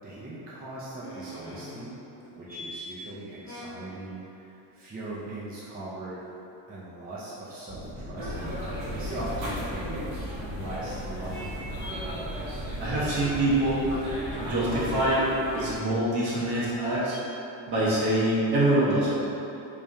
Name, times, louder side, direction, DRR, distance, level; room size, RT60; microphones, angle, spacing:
voice 1, 0.0-1.9 2.4-6.2 6.7-8.6 8.9-11.6, right 2 dB, 20° right, -9 dB, 0.6 m, -40 dB
sound 1, 1.0-2.9 3.4-3.7 7.5-7.6 9.2-9.3 10.6-10.8 11.3-11.5 11.8-15.1 15.5-15.6 17.1-17.2 17.7-18.2 18.5-18.6, equal, 60° left, 1.1 m, -43 dB
sound 2, 7.7-15.1, equal, 5° left, 1.1 m, -40 dB
sound 3, 8.2-15.8, equal, 85° right, 1.0 m, -36 dB
voice 2, 12.5-13.9 14.4-17.2 17.7-19.2, right 1 dB, 55° right, -8 dB, 1.2 m, -25 dB
3.5 x 3.4 x 2.7 m, 2.9 s
cardioid pair, 125°, 44 cm